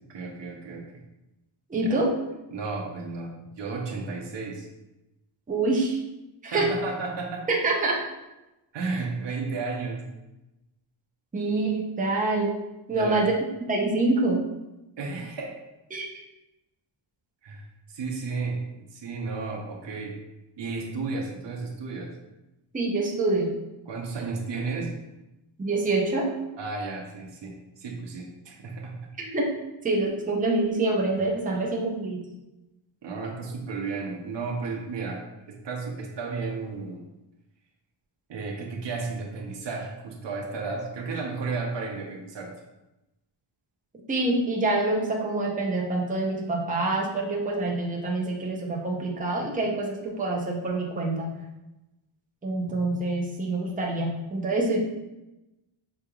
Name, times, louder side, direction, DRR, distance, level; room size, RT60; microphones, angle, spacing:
voice 1, 0.1-1.0 1.7-2.0 2.5-4.7 6.5-7.5 8.7-10.0 12.9-13.3 15.0-15.6 17.4-17.6 17.9-20.1 20.6-22.1 23.9-24.9 26.6-29.0 33.0-37.0 38.3-42.5 52.6-52.8, right 4 dB, 60° right, 1 dB, 0.8 m, -33 dB
voice 2, 1.7-2.1 5.5-6.0 6.4-6.7 7.5-8.0 11.3-12.6 12.9-13.3 13.7-14.4 15.9-16.1 22.7-23.5 25.6-26.3 29.2-29.5 29.8-32.2 44.1-51.3 52.4-54.8, right 2 dB, 15° right, -1 dB, 0.6 m, -26 dB
5.6 x 3.4 x 2.3 m, 0.97 s
wide cardioid pair, 120°, 48 cm